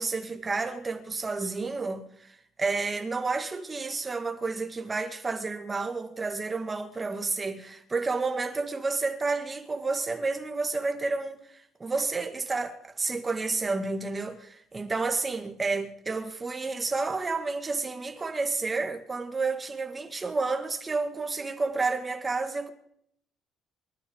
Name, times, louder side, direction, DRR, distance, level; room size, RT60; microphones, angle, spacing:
voice 1, 0.0-22.7, right 3 dB, 15° right, 1.6 m, -30 dB
26.0 x 13.5 x 3.7 m
cardioid pair, 165°, 0 cm